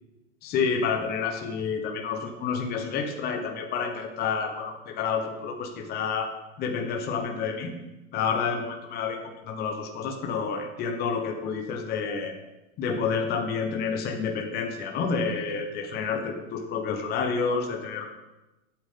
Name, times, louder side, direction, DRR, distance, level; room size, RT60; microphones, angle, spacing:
voice 1, 0.4-6.3 6.6-7.7 8.1-12.3 12.8-18.1, left 5 dB, 25° left, 3 dB, 1.2 m, -29 dB
13.5 x 8.5 x 3.9 m, 1.0 s
hypercardioid pair, 135°, 39 cm